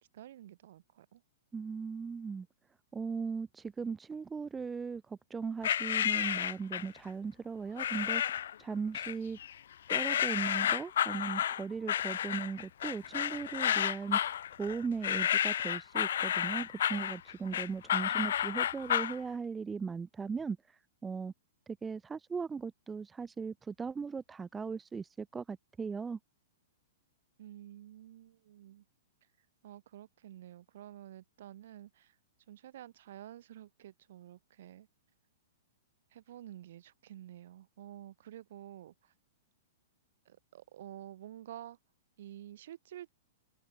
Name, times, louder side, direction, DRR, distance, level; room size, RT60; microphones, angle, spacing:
voice 1, 0.1-1.2 27.4-28.8 29.6-32.1 32.5-34.9 36.1-39.1 40.3-41.8 42.2-43.1, right 12 dB, 50° right, 7.7 m, -50 dB
voice 2, 1.5-2.5 2.9-9.4 9.9-14.2 14.6-21.3 21.7-26.2, right 5 dB, 10° right, 2.0 m, -38 dB
sound 1, 5.6-7.0 7.8-8.5 8.9-9.5 9.9-19.2, left 10 dB, 65° left, 2.3 m, -31 dB
hypercardioid pair, 170°, 0 cm